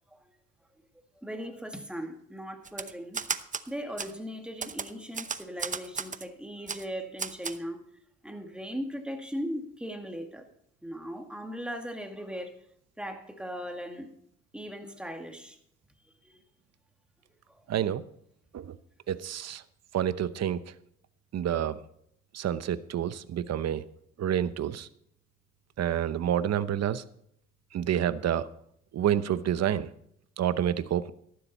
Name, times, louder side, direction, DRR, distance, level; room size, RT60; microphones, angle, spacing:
voice 1, 1.2-3.2 3.7-7.8 8.2-10.4 10.8-12.5 13.0-14.1 14.5-15.6 16.0-16.4 17.5-17.6 19.0-19.2, equal, 5° right, 5 dB, 2.0 m, -38 dB
Typewriter, 2.6-3.7 4.0-4.1 4.6-6.2 6.7-6.8 7.2-7.6, right 5 dB, 25° right, 0.7 m, -34 dB
voice 2, 17.7-18.0 18.5-18.8 19.1-19.6 19.9-20.6 21.3-21.8 22.3-23.8 24.2-24.9 25.8-27.0 27.7-28.5 28.9-29.9 30.4-31.1, right 10 dB, 60° right, 14 dB, 0.9 m, -28 dB
13.5 x 11.5 x 4.2 m, 0.69 s
cardioid pair, 90°, 30 cm